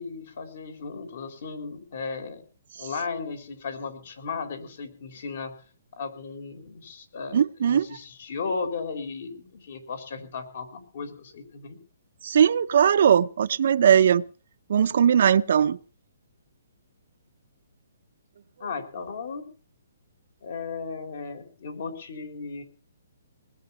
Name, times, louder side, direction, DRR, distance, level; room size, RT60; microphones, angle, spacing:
voice 1, 0.0-2.4 2.8-5.5 6.0-11.8 18.6-19.5 20.4-22.6, left 5 dB, 55° left, 7 dB, 4.3 m, -35 dB
voice 2, 7.3-7.9 12.2-14.2 14.7-15.8, right 8 dB, 55° right, 13 dB, 0.7 m, -19 dB
20.0 x 8.7 x 6.9 m, 0.39 s
hypercardioid pair, 165°, 0 cm